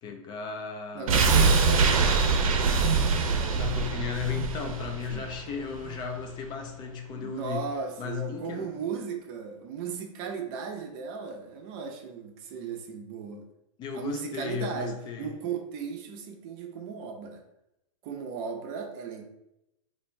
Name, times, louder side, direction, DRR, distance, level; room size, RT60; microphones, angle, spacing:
voice 1, 0.0-1.3 3.5-7.7 8.0-8.6 13.8-15.3, left 7 dB, 25° left, 3 dB, 0.4 m, -35 dB
voice 2, 0.9-2.1 5.1-5.3 7.2-13.4 13.9-17.4 18.0-19.2, right 6 dB, 40° right, 4 dB, 0.6 m, -36 dB
sound 1, 1.1-6.0 6.3-6.4, right 4 dB, 80° right, 0.6 m, -24 dB
3.0 x 2.6 x 3.3 m, 0.85 s
hypercardioid pair, 130°, 18 cm